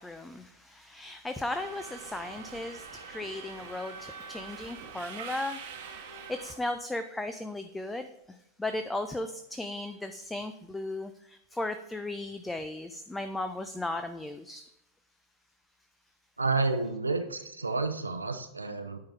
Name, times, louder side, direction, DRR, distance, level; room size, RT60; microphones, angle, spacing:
voice 1, 0.0-14.6, left 2 dB, 10° left, 9 dB, 0.4 m, -36 dB
Subway metro underground, 1.5-6.5, right 6 dB, 50° right, 1.0 m, -44 dB
voice 2, 16.4-19.0, right 3 dB, 80° right, 8 dB, 0.6 m, -30 dB
9.4 x 3.9 x 4.5 m, 0.86 s
figure-of-eight pair, 90°, 0 cm